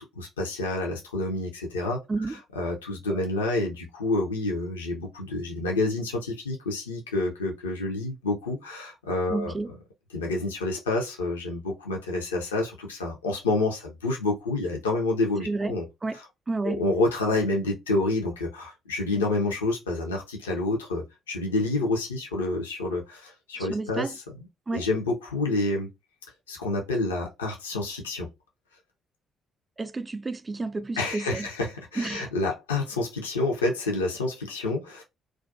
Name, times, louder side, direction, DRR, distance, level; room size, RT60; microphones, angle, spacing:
voice 1, 0.0-2.0 2.3-9.5 10.1-15.9 16.1-16.2 16.6-24.5 24.7-25.9 26.5-28.3 31.0-35.0, left 2 dB, 80° left, 0.4 m, -28 dB
voice 2, 9.3-9.7 15.4-15.8 16.0-16.2 16.5-16.8 23.6-24.1 24.7-24.9 29.8-31.5 32.0-32.3, right 3 dB, 25° right, 0.3 m, -31 dB
2.3 x 2.2 x 2.5 m
figure-of-eight pair, 45°, 0 cm